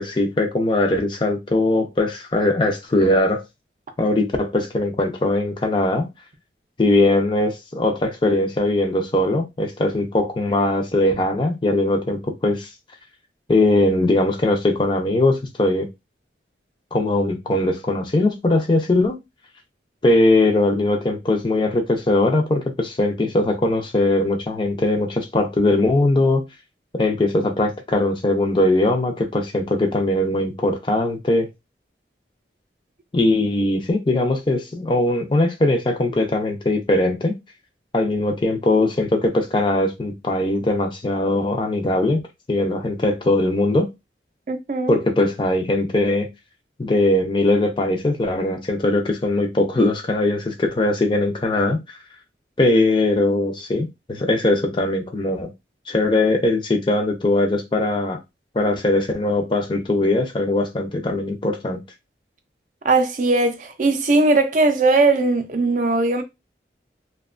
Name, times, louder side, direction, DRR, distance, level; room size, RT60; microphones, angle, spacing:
voice 1, 0.0-3.4 4.0-6.1 6.8-12.7 13.5-15.9 16.9-19.2 20.0-26.4 26.9-31.5 33.1-37.4 37.9-42.2 42.5-43.9 44.9-46.3 46.8-51.8 52.6-55.5 55.9-58.2 58.5-61.8, left 2 dB, 25° left, 0.4 m, -20 dB
voice 2, 44.5-45.0 62.8-66.2, right 3 dB, 45° right, 0.4 m, -19 dB
2.8 x 2.2 x 2.4 m
head